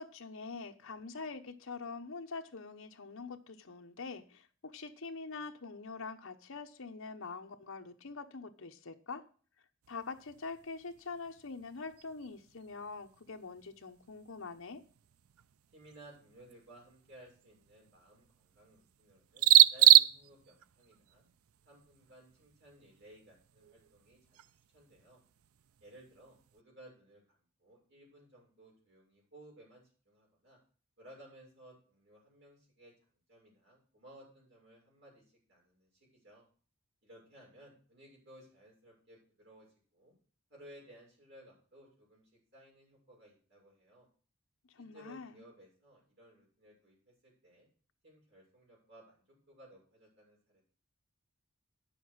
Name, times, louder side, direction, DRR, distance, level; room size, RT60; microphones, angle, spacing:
voice 1, 0.0-9.2 9.9-14.8 44.8-45.4, left 4 dB, 65° left, 6 dB, 1.0 m, -44 dB
sound 1, 9.8-26.6, right 14 dB, 80° right, 0.4 m, -32 dB
voice 2, 15.7-21.2 21.6-24.4 24.7-25.2 25.8-30.6 31.0-32.9 33.3-36.5 37.0-39.7 39.9-40.1 40.5-44.1 44.8-47.7 48.0-50.6, right 1 dB, 55° right, -3 dB, 6.8 m, -58 dB
9.4 x 7.0 x 6.2 m, 0.41 s
head